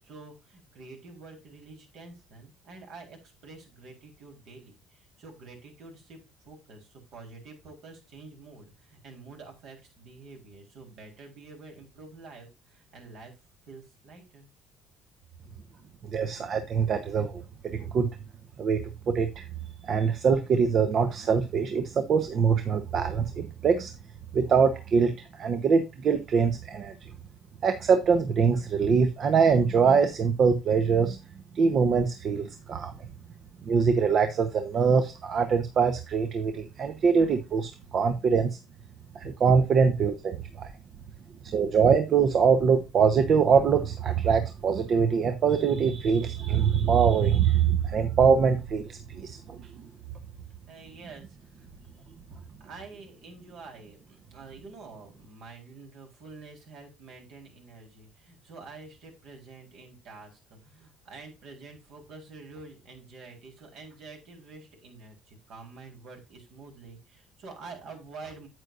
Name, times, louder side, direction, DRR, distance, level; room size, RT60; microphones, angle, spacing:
voice 1, 0.0-13.4 13.7-14.5 50.7-51.7 52.6-68.5, right 3 dB, 70° right, 3.9 m, -48 dB
voice 2, 16.0-18.1 18.6-19.5 19.8-23.9 24.3-26.9 27.6-31.2 31.5-32.9 33.6-38.6 39.1-40.7 41.4-49.9, right 6 dB, 50° right, 0.9 m, -23 dB
9.0 x 8.2 x 2.5 m
supercardioid pair, 90°, 0 cm